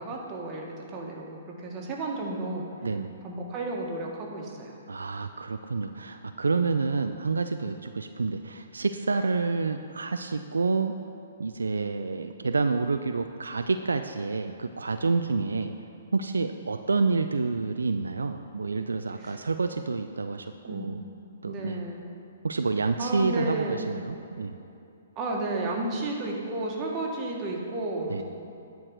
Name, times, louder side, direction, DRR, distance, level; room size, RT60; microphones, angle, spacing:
voice 1, 0.0-2.6 3.2-4.7 19.2-19.4 20.7-20.9 21.4-22.0 23.0-23.8 25.1-28.2, right 2 dB, 30° right, -1 dB, 1.6 m, -32 dB
voice 2, 4.9-10.9 11.4-15.7 16.1-21.0 21.4-21.8 22.4-24.6 28.1-28.2, right 4 dB, 80° right, 7 dB, 0.4 m, -28 dB
10.0 x 4.7 x 6.3 m, 2.7 s
figure-of-eight pair, 125°, 0 cm